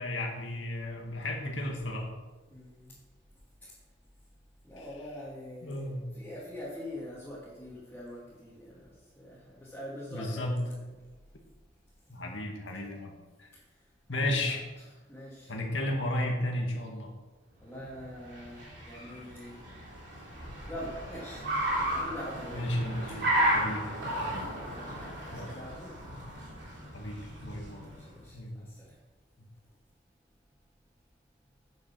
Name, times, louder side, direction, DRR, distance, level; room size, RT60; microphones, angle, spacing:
voice 1, 0.0-2.1 5.6-6.1 10.1-10.6 12.1-13.1 13.4-13.5 14.1-14.6 15.5-17.1 22.5-23.2 23.5-23.9 24.2-24.5 25.3-25.5 26.0-26.2 26.9-27.8 28.3-28.7, left 1 dB, 75° left, 1 dB, 2.0 m, -33 dB
voice 2, 2.5-3.1 3.6-3.9 4.2-4.3 4.6-10.7 11.0-11.3 11.8-12.3 13.5-15.6 17.6-19.9 20.1-20.4 20.7-21.5 21.8-22.7 23.1-23.2 24.6-26.0 27.7-29.1 29.6-29.8, equal, 10° left, -9 dB, 2.4 m, -45 dB
Car, 17.9-28.1, right 1 dB, 60° right, 3.2 m, -34 dB
9.5 x 7.2 x 6.2 m, 1.2 s
head